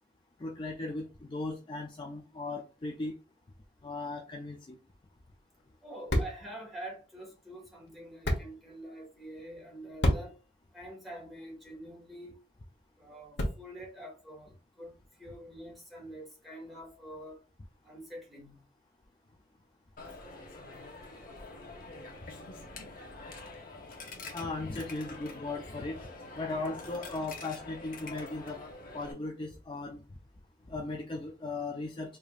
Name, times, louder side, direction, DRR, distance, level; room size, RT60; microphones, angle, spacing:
voice 1, 0.4-3.1 3.8-4.8 24.3-26.1 26.3-28.6 28.9-30.0 30.7-32.2, left 2 dB, 30° left, 0.4 m, -37 dB
sound 1, 4.9-13.9, equal, 80° left, 1.1 m, -37 dB
voice 2, 5.8-10.4 10.7-12.3 13.0-14.9 15.2-17.4 17.8-18.6, right 1 dB, ahead, 1.6 m, -46 dB
Coin (dropping), 20.0-29.1, left 3 dB, 55° left, 0.9 m, -46 dB
4.9 x 2.7 x 2.4 m
head